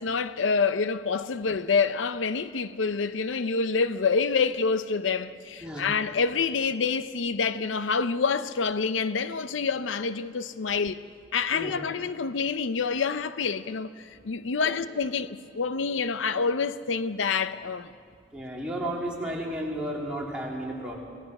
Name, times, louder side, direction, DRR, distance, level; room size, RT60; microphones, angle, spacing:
voice 1, 0.0-11.0 11.3-17.9, left 5 dB, 85° left, 0.6 m, -27 dB
voice 2, 11.5-11.8 14.6-14.7 18.3-21.0, right 1 dB, 5° right, 3.3 m, -33 dB
26.5 x 18.0 x 6.0 m
head